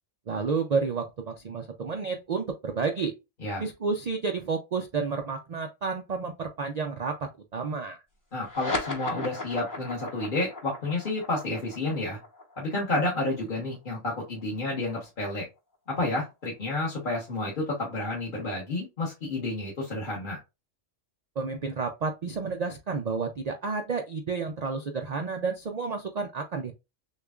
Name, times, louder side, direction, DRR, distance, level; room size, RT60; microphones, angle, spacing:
voice 1, 0.3-3.1 3.6-8.0 21.4-26.7, right 4 dB, 60° right, 5 dB, 0.4 m, -31 dB
voice 2, 8.3-12.2 12.6-15.5 16.0-20.4, left 2 dB, 45° left, -5 dB, 1.3 m, -30 dB
sound 1, 8.4-15.2, left 2 dB, 15° left, 0.9 m, -37 dB
6.5 x 2.3 x 2.4 m, 0.25 s
omnidirectional pair, 1.3 m